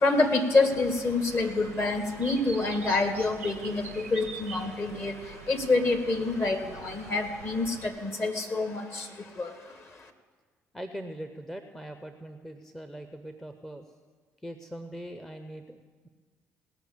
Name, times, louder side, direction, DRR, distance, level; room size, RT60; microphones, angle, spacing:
voice 1, 0.0-5.1 5.5-8.8 9.4-9.5, left 3 dB, 35° left, 5 dB, 1.8 m, -27 dB
Bird, 0.7-7.9, right 5 dB, 85° right, 0.8 m, -45 dB
voice 2, 10.7-13.9 14.4-16.1, right 1 dB, 5° left, 7 dB, 0.8 m, -41 dB
18.0 x 6.1 x 7.1 m, 1.4 s
figure-of-eight pair, 50°, 7 cm